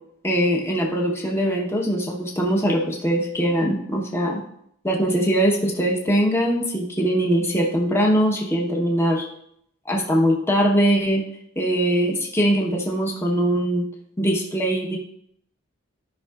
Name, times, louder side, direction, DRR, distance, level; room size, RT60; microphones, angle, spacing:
voice 1, 0.2-4.4 4.8-9.2 9.9-11.2 11.6-13.9 14.2-15.0, equal, 10° left, -1 dB, 1.0 m, -21 dB
13.0 x 5.5 x 2.4 m, 0.71 s
head